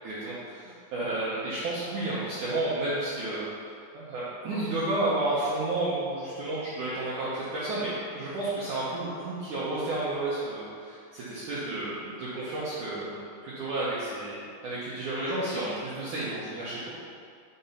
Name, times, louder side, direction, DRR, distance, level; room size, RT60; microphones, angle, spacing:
voice 1, 0.0-3.5 3.9-14.4 14.6-16.9, right 2 dB, 85° right, -9 dB, 1.7 m, -31 dB
6.2 x 5.8 x 5.6 m, 2.3 s
omnidirectional pair, 5.4 m